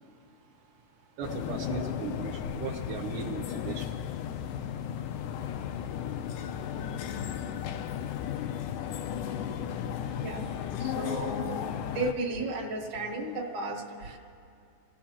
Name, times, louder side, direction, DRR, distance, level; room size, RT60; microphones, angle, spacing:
sound 1, 1.2-12.1, left 9 dB, 80° left, 2.0 m, -35 dB
voice 1, 1.2-3.9, right 7 dB, 75° right, -1 dB, 2.3 m, -37 dB
voice 2, 10.8-11.6 11.9-14.2, right 2 dB, 50° right, -2 dB, 2.1 m, -34 dB
28.5 x 17.5 x 2.9 m, 2.5 s
omnidirectional pair, 3.9 m